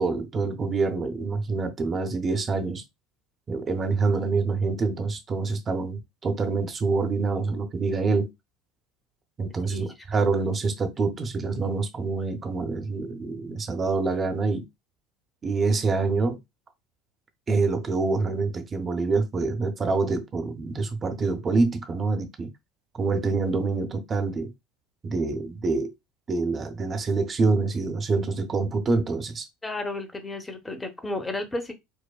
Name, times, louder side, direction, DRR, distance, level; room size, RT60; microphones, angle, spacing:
voice 1, 0.0-2.8 3.5-8.3 9.4-14.7 15.4-16.4 17.5-22.5 23.0-24.5 25.0-25.9 26.3-29.4, right 3 dB, 30° right, 0.8 m, -26 dB
voice 2, 29.6-31.7, left 2 dB, 15° left, 0.8 m, -32 dB
4.8 x 2.1 x 2.3 m
figure-of-eight pair, 70°, 0 cm